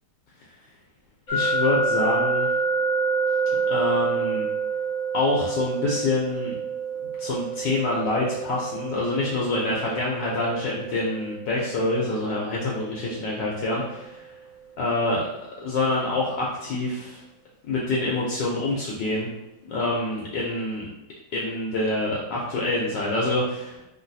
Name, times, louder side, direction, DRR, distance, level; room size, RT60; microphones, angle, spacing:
voice 1, 1.3-2.5 3.7-4.5 5.1-6.6 7.2-14.2 14.8-15.3 15.6-17.2 17.6-19.3 19.7-20.9 21.3-23.8, left 2 dB, 70° left, -4 dB, 1.1 m, -26 dB
sound 1, 1.3-14.2, right 4 dB, 50° left, 0.5 m, -28 dB
3.9 x 2.3 x 2.6 m, 0.93 s
omnidirectional pair, 2.2 m